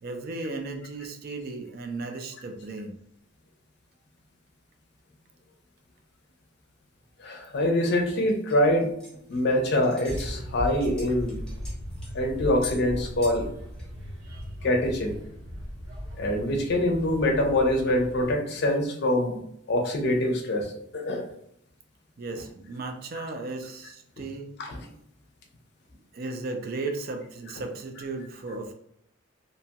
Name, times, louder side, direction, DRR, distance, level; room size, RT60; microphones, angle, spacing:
voice 1, 0.0-3.0 14.2-14.5 22.2-24.5 26.1-28.7, right 3 dB, 45° right, 5 dB, 0.4 m, -35 dB
voice 2, 7.2-8.9 9.3-11.4 12.1-13.5 14.6-15.2 16.2-19.4 19.7-21.3 24.7-24.8, left 1 dB, 55° left, 3 dB, 0.5 m, -24 dB
sound 1, 8.1-9.5 9.8-10.3 10.6-12.2 12.6-12.8 13.2-13.5 13.7-13.8 14.4-14.5, left 5 dB, 5° left, 0.7 m, -43 dB
sound 2, 10.0-18.3, equal, 85° right, 0.9 m, -38 dB
2.7 x 2.2 x 2.8 m, 0.75 s
head